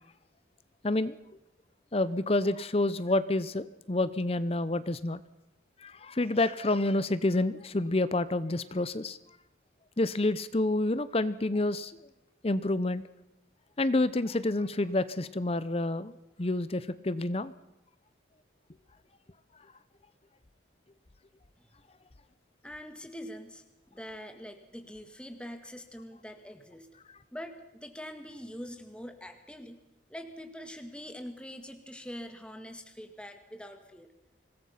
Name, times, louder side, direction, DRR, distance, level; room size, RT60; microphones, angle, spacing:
voice 1, 0.8-1.2 1.9-5.2 5.8-9.2 10.0-11.9 12.4-13.0 13.8-17.5, left 2 dB, 30° left, 15 dB, 0.7 m, -28 dB
voice 2, 22.6-26.9 27.3-29.8 30.1-34.1, equal, 5° left, 6 dB, 1.8 m, -44 dB
25.5 x 20.0 x 5.8 m, 0.92 s
head